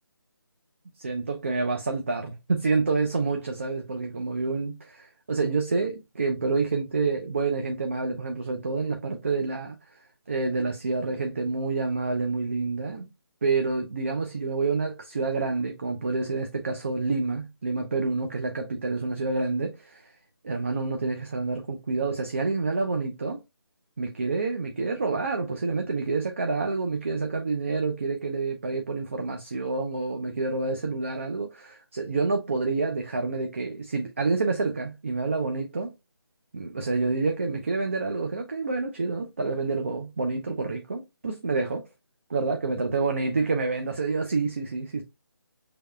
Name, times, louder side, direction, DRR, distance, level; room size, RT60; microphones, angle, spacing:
voice 1, 1.0-9.8 10.3-13.1 13.4-20.1 20.4-23.4 24.0-35.9 36.5-41.9 42.3-45.0, right 3 dB, 30° right, 0.4 m, -28 dB
5.3 x 3.4 x 2.2 m
figure-of-eight pair, 170°, 13 cm